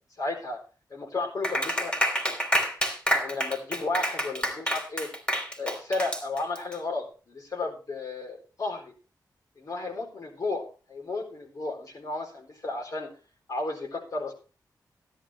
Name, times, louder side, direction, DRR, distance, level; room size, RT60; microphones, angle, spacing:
voice 1, 0.2-0.6 0.9-1.9 3.1-5.1 5.6-8.9 9.6-10.6 10.9-13.1 13.5-14.3, left 3 dB, 55° left, 2 dB, 4.2 m, -33 dB
Clapping, 1.4-6.7, equal, 15° left, 3.2 m, -28 dB
13.5 x 11.0 x 3.3 m, 0.35 s
wide cardioid pair, 85°, 7 cm